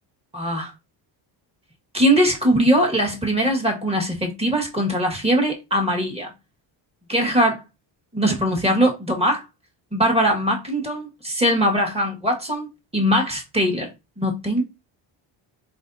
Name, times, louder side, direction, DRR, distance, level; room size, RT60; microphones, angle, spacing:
voice 1, 0.3-0.7 1.9-6.3 7.1-7.6 8.1-9.4 9.9-13.9 14.2-14.6, equal, 10° right, 1.6 m, -21 dB
4.2 x 3.7 x 2.6 m
cardioid pair, 95°, 48 cm